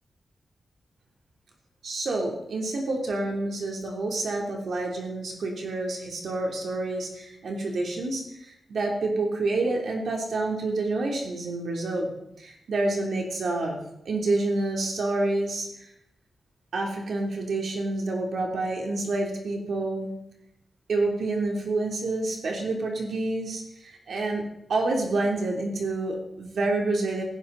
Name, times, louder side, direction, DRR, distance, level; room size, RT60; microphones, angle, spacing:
voice 1, 1.8-8.2 8.7-13.8 14.0-15.7 16.7-20.1 20.9-23.6 24.1-24.4 24.7-27.2, right 2 dB, 75° right, 0 dB, 3.2 m, -28 dB
17.0 x 15.0 x 4.0 m, 0.80 s
wide cardioid pair, 115°, 0 cm